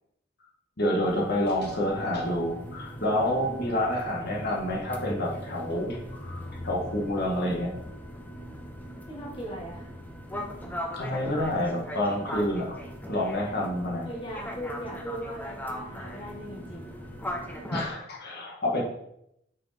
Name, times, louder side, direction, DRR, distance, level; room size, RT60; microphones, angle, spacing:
voice 1, 0.8-7.8 10.9-12.7 13.1-14.1 17.7-18.8, left 1 dB, 50° left, -2 dB, 1.5 m, -28 dB
sound 1, 1.0-17.9, equal, 10° left, 0.7 m, -39 dB
voice 2, 9.1-9.9 14.0-17.0, equal, 25° left, -3 dB, 1.3 m, -39 dB
6.0 x 4.9 x 4.2 m, 0.78 s
head